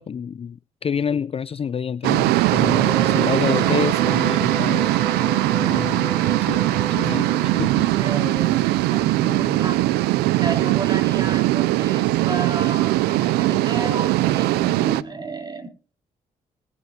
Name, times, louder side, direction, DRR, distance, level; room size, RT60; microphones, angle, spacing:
voice 1, 0.0-4.9 5.6-6.1 6.4-6.6 7.0-8.0 9.6-9.7, left 7 dB, 35° left, 0.4 m, -28 dB
sound 1, 2.0-15.0, right 17 dB, 85° right, 0.4 m, -20 dB
sound 2, 2.5-9.8, left 1 dB, 10° left, 0.8 m, -34 dB
voice 2, 8.0-9.8 10.3-15.7, right 3 dB, 25° right, 3.7 m, -32 dB
20.0 x 8.3 x 2.8 m
supercardioid pair, 50°, 16 cm